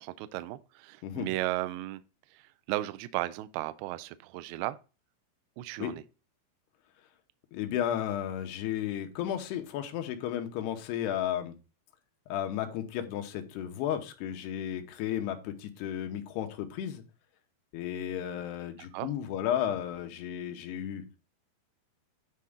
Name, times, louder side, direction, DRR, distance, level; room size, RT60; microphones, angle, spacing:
voice 1, 0.0-2.0 2.3-4.8 5.6-6.0 18.8-19.1, right 16 dB, 80° right, 2.4 m, -35 dB
voice 2, 7.5-11.5 12.3-17.0 17.7-21.0, left 10 dB, 80° left, 3.0 m, -33 dB
9.8 x 4.3 x 3.5 m
omnidirectional pair, 4.8 m